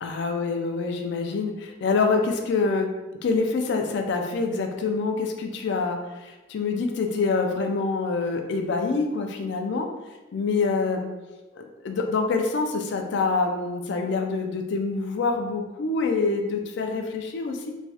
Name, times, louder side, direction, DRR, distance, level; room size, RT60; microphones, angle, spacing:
voice 1, 0.0-2.9 3.2-9.9 10.3-11.1 11.5-17.7, left 4 dB, 60° left, 4 dB, 0.4 m, -26 dB
3.1 x 2.3 x 2.8 m, 1.1 s
head